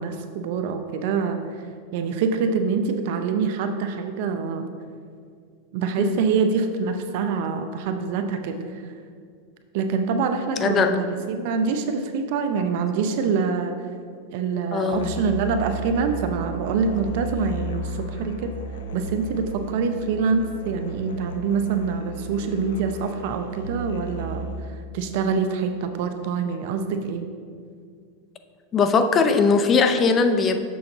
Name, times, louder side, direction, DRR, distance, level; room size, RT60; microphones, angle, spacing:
voice 1, 0.0-1.4 1.9-4.7 5.7-8.8 9.7-13.8 14.3-18.5 18.9-24.5 24.9-27.2, right 5 dB, 60° right, 6 dB, 0.6 m, -25 dB
voice 2, 10.6-10.9 14.7-15.1 28.7-30.6, left 4 dB, 30° left, 8 dB, 0.6 m, -20 dB
Musical instrument, 14.9-24.7, right 1 dB, 85° left, 0.8 m, -34 dB
6.9 x 6.3 x 3.9 m, 2.2 s
supercardioid pair, 125°, 0 cm